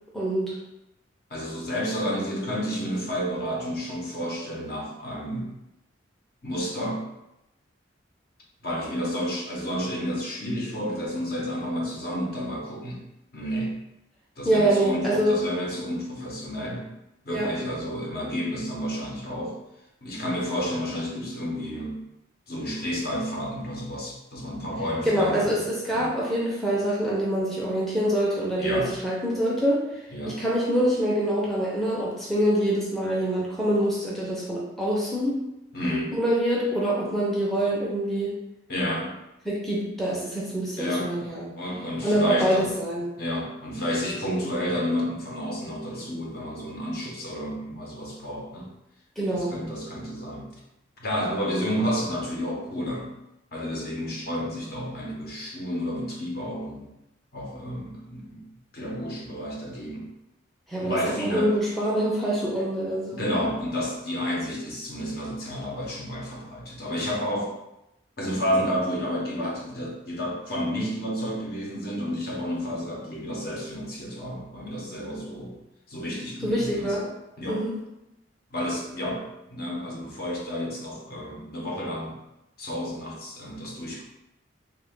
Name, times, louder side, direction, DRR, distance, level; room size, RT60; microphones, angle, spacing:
voice 1, 0.1-0.6 14.4-15.4 17.3-17.6 25.0-35.4 36.1-38.4 39.5-41.5 42.0-43.1 49.2-49.5 60.7-63.2 76.4-77.1 77.5-77.8, right 1 dB, ahead, -5 dB, 0.5 m, -25 dB
voice 2, 1.3-5.5 6.4-7.0 8.6-13.0 13.3-13.7 14.4-16.9 17.2-19.6 20.0-22.0 22.5-25.5 25.9-26.1 28.6-28.9 30.1-30.4 35.7-36.1 38.7-39.2 40.8-41.3 41.6-42.7 43.2-48.7 49.3-50.5 51.0-53.1 53.5-56.9 57.3-58.4 58.7-60.1 60.8-61.6 63.1-67.5 68.2-75.6 75.9-77.0 77.4-77.6 78.5-79.2 79.5-82.2 82.6-84.0, equal, 50° left, -2 dB, 0.8 m, -30 dB
3.3 x 2.3 x 3.6 m, 0.86 s
head